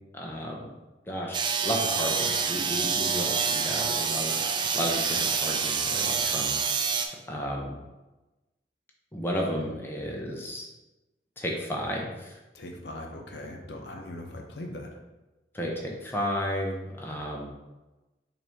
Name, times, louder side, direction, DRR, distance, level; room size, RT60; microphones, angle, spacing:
voice 1, 0.1-0.6 1.1-1.4 1.6-6.6 7.3-7.8 9.1-10.7 11.4-12.3 15.5-17.5, equal, 10° left, -1 dB, 0.6 m, -33 dB
sound 1, 1.3-7.1, right 6 dB, 25° right, 0.3 m, -27 dB
voice 2, 12.5-15.0, left 1 dB, 70° left, 2 dB, 0.6 m, -40 dB
5.7 x 2.6 x 3.4 m, 1.1 s
head